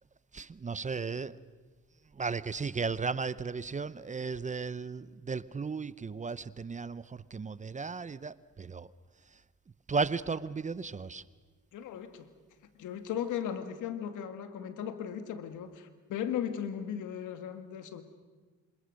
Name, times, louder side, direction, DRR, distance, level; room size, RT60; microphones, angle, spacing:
voice 1, 0.3-1.4 2.1-8.9 9.3-9.4 9.9-11.2, right 4 dB, 25° right, 0.7 m, -35 dB
voice 2, 11.7-12.3 12.8-18.0, left 9 dB, 80° left, 2.0 m, -37 dB
27.0 x 27.0 x 6.5 m
cardioid pair, 90°, 30 cm